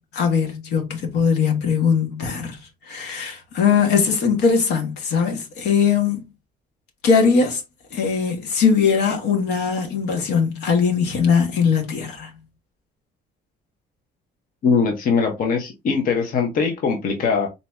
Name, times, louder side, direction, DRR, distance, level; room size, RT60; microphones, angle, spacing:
voice 1, 0.1-2.6 2.9-6.2 7.0-7.6 7.9-12.3, left 6 dB, 80° left, 1.5 m, -20 dB
voice 2, 14.6-17.5, left 5 dB, 55° left, 1.1 m, -21 dB
4.1 x 2.8 x 3.5 m
cardioid pair, 110°, 17 cm